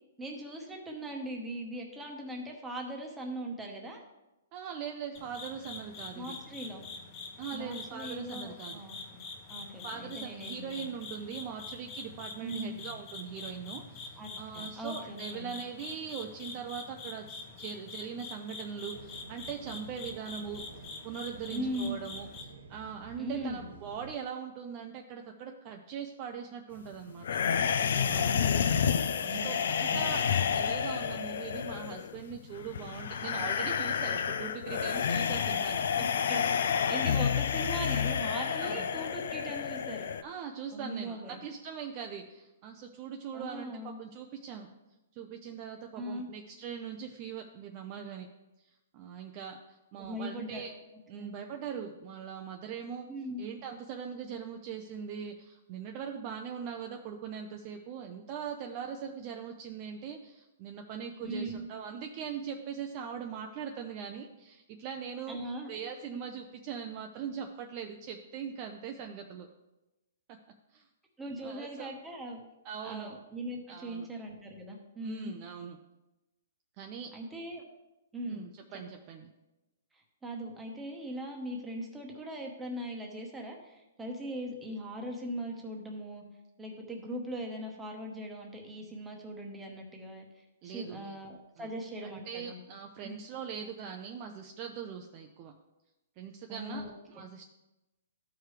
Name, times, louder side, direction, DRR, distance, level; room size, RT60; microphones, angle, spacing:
voice 1, 0.2-4.0 6.1-6.8 7.5-9.2 9.5-10.9 12.4-12.8 14.2-15.6 21.5-22.0 23.2-23.7 28.0-28.6 29.2-29.6 29.9-30.1 36.3-40.1 40.7-41.4 43.3-44.0 45.9-46.3 50.0-50.6 51.2-51.4 53.1-53.4 61.2-61.7 65.3-65.7 71.2-72.4 72.8-75.3 77.1-77.7 78.1-78.4 78.7-78.8 79.9-86.2 86.6-92.6 93.0-93.2 96.5-97.0, right 1 dB, 5° right, 1 dB, 1.0 m, -40 dB
voice 2, 4.5-6.4 7.4-8.8 9.8-20.6 21.0-27.3 27.8-28.3 29.0-30.3 30.5-35.8 38.6-38.9 40.2-44.7 45.1-48.3 48.9-50.7 51.1-53.1 53.4-65.4 65.7-69.5 70.3-70.4 70.7-70.8 71.4-71.9 72.6-73.2 73.7-74.1 75.0-75.8 76.8-77.1 78.3-79.3 90.6-91.2 91.6-91.7 92.0-95.5 96.2-96.8 97.1-97.5, right 7 dB, 30° right, 4 dB, 0.5 m, -41 dB
sound 1, 5.1-22.4, left 3 dB, 30° left, 1.1 m, -45 dB
sound 2, 18.9-24.1, right 3 dB, 80° right, 1.1 m, -51 dB
sound 3, 27.2-40.2, left 7 dB, 70° left, 0.4 m, -30 dB
13.0 x 4.7 x 3.2 m, 0.99 s
hypercardioid pair, 160°, 0 cm